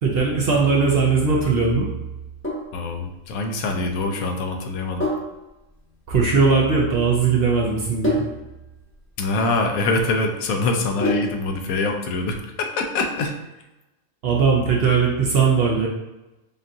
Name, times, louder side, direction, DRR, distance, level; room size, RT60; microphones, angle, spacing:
voice 1, 0.0-1.9 6.1-8.2 14.2-15.9, right 5 dB, 55° right, -2 dB, 0.7 m, -19 dB
Sink (filling or washing), 2.1-11.6, equal, 10° left, 0.7 m, -30 dB
voice 2, 2.7-5.0 9.2-13.4, left 3 dB, 85° left, 4 dB, 1.1 m, -24 dB
5.3 x 2.4 x 2.7 m, 1.0 s
omnidirectional pair, 1.5 m